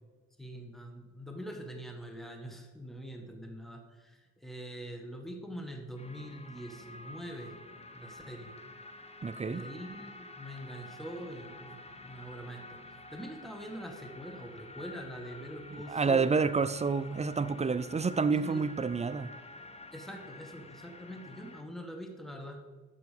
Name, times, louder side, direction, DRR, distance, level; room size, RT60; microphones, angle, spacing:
voice 1, 0.4-7.6 7.9-8.5 9.5-12.8 13.1-16.3 18.3-18.6 19.9-22.6, equal, ahead, 1.5 m, -44 dB
sound 1, 6.0-21.6, left 2 dB, 20° left, 1.0 m, -49 dB
voice 2, 9.2-9.7 15.7-19.3, right 5 dB, 20° right, 0.5 m, -29 dB
8.6 x 7.0 x 6.6 m
cardioid pair, 90°, 30 cm